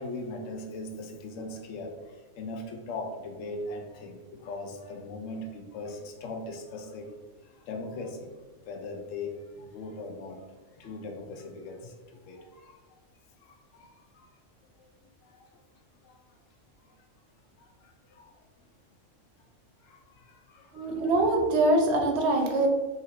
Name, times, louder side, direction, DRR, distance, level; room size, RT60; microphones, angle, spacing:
voice 1, 0.0-7.1 7.4-8.3 8.7-12.8 13.4-14.3 15.2-15.5 16.0-16.2 16.8-16.9 17.6-18.3 19.8-20.9, left 2 dB, 80° left, 2 dB, 1.0 m, -40 dB
voice 2, 20.7-22.7, right 2 dB, 60° right, 3 dB, 0.9 m, -24 dB
3.8 x 2.5 x 4.2 m, 1.2 s
omnidirectional pair, 1.3 m